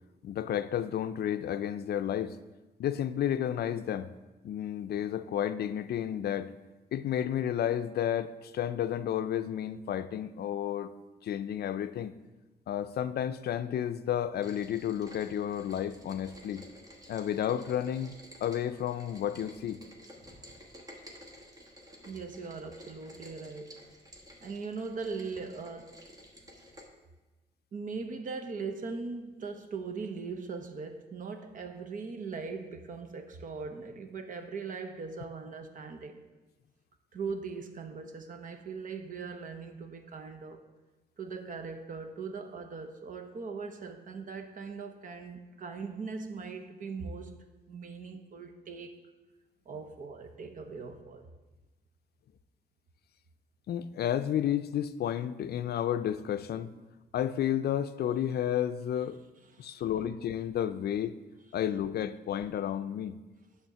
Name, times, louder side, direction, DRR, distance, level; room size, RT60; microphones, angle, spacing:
voice 1, 0.2-2.4 2.8-4.1 4.4-6.5 6.9-10.9 11.2-12.1 12.7-16.6 17.1-18.1 18.4-19.8 53.7-56.7 57.1-59.2 59.6-61.1 61.5-63.2, left 10 dB, 70° left, 11 dB, 0.4 m, -31 dB
Rain, 14.4-26.8, equal, 20° right, 1.2 m, -52 dB
voice 2, 22.0-23.8 24.4-25.9 27.7-36.2 37.1-40.6 41.2-47.4 47.7-48.9 49.7-51.3 59.6-59.8, right 4 dB, 55° right, 5 dB, 0.8 m, -40 dB
8.9 x 3.6 x 6.7 m, 1.1 s
wide cardioid pair, 140°, 17 cm